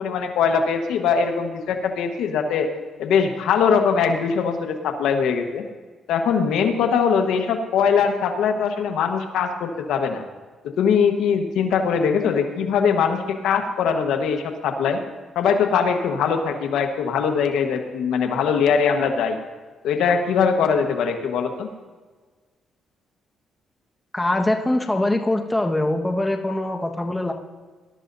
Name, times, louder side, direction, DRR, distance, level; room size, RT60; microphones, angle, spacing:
voice 1, 0.0-2.7 3.0-5.6 6.1-10.2 10.6-15.0 15.3-19.4 19.8-21.7, left 6 dB, 85° left, 5 dB, 1.3 m, -21 dB
voice 2, 24.1-27.3, left 1 dB, 10° left, 3 dB, 1.4 m, -23 dB
21.0 x 12.5 x 2.7 m, 1.4 s
cardioid pair, 90°, 0 cm